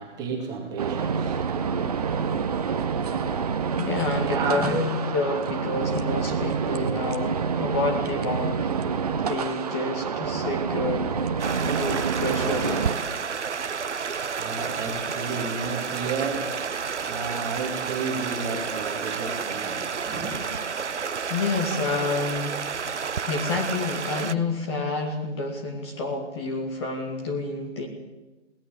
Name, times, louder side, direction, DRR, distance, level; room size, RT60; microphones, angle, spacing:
voice 1, 0.0-3.8 4.2-4.8 14.3-20.4, right 4 dB, 10° right, 1 dB, 2.5 m, -33 dB
sound 1, 0.8-12.9, right 6 dB, 30° right, 1.1 m, -27 dB
voice 2, 3.8-8.7 9.1-11.1 11.6-12.9 20.8-21.0 21.3-22.6 23.2-27.9, left 3 dB, 20° left, 2 dB, 2.1 m, -29 dB
Stream, 11.4-24.3, right 6 dB, 70° right, 0.8 m, -30 dB
22.0 x 18.0 x 7.0 m, 1.1 s
figure-of-eight pair, 145°, 37 cm